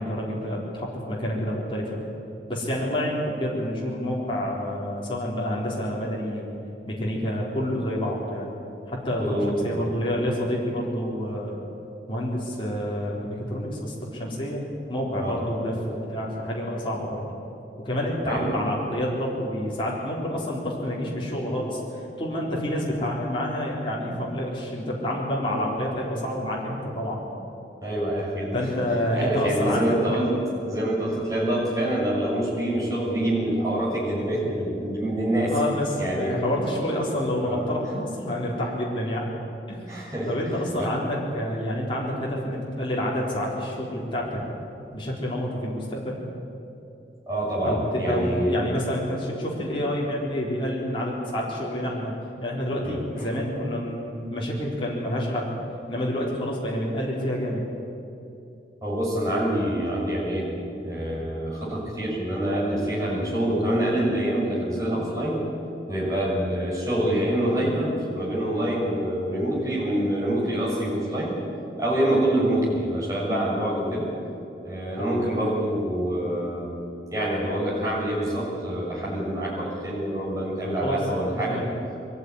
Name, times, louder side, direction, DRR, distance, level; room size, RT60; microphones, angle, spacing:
voice 1, 0.0-2.0 2.5-6.5 6.9-8.5 8.9-11.5 12.1-14.6 14.9-17.3 17.8-21.8 22.2-27.2 28.5-30.2 35.4-39.3 39.7-40.0 40.3-44.4 44.9-46.2 47.6-52.1 52.4-55.5 55.9-57.6 75.0-75.1 80.8-81.7, equal, 30° left, -5 dB, 4.1 m, -28 dB
voice 2, 9.2-9.9 15.2-15.4 18.2-18.5 27.8-28.5 29.1-30.3 30.6-35.5 36.0-36.4 37.4-37.7 39.9-40.9 47.3-48.7 52.8-53.3 58.8-60.5 60.8-65.4 65.9-71.4 71.8-74.1 74.6-76.7 77.1-81.6, right 1 dB, 20° right, -6 dB, 6.7 m, -26 dB
23.0 x 15.0 x 9.8 m, 2.8 s
head